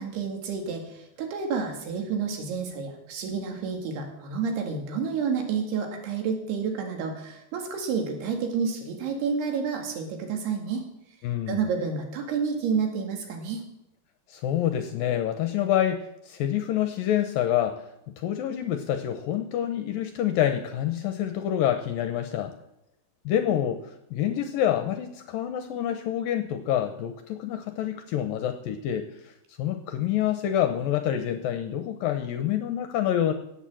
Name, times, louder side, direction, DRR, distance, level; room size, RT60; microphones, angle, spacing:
voice 1, 0.0-10.8 11.5-13.6, right 5 dB, 75° right, 3 dB, 4.1 m, -29 dB
voice 2, 11.2-11.6 14.3-17.9 18.2-22.5 23.3-33.3, left 11 dB, 75° left, 8 dB, 2.2 m, -27 dB
17.0 x 7.1 x 7.6 m, 0.82 s
omnidirectional pair, 4.8 m